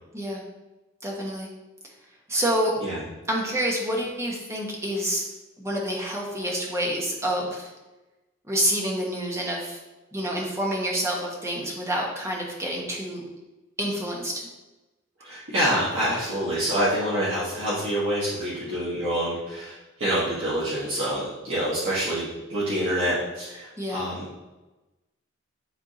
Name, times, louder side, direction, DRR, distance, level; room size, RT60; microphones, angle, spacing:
voice 1, 1.0-1.5 2.3-2.7 3.3-5.2 5.6-7.7 8.5-9.8 10.1-13.2 13.8-14.5 23.8-24.1, equal, 15° right, -2 dB, 1.2 m, -28 dB
voice 2, 15.2-24.2, equal, 70° right, -10 dB, 1.6 m, -26 dB
9.9 x 3.6 x 2.8 m, 1.1 s
head